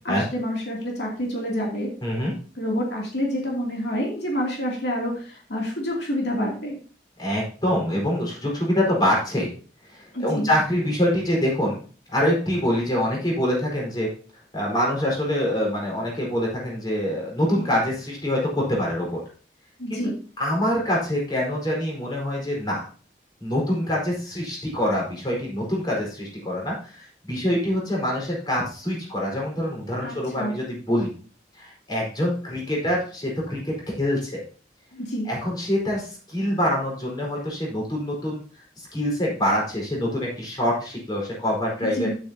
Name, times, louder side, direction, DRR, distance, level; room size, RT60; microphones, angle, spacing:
voice 1, 0.0-1.9 2.6-6.8 10.1-10.5 19.8-20.1 30.0-30.5 34.9-35.3 41.8-42.2, equal, 75° left, -2 dB, 2.8 m, -28 dB
voice 2, 2.0-2.3 7.2-9.5 9.8-11.8 12.1-14.1 14.5-19.2 19.9-20.0 20.4-22.8 23.4-31.1 31.5-34.4 35.2-38.4 38.9-42.1, equal, 25° left, -3 dB, 4.7 m, -25 dB
11.0 x 8.8 x 2.9 m, 0.39 s
head